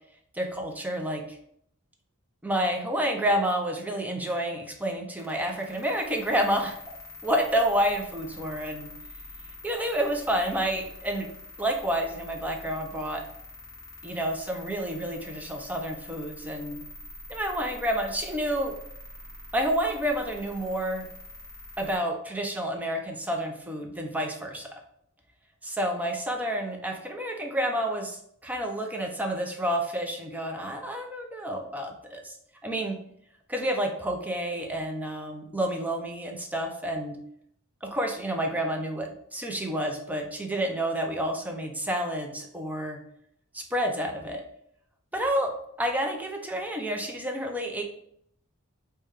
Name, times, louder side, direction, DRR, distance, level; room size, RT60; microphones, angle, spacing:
voice 1, 0.3-1.4 2.4-6.8 7.2-8.9 9.6-11.3 11.6-13.2 14.0-16.8 17.3-18.7 19.5-21.1 21.8-24.7 25.6-32.4 32.6-33.0 33.5-37.2 37.8-43.0 43.5-44.4 45.1-45.5 45.8-47.8, equal, 5° right, 3 dB, 0.5 m, -29 dB
sound 1, 5.2-22.0, left 1 dB, 15° left, 1.0 m, -45 dB
5.0 x 2.2 x 3.1 m, 0.69 s
head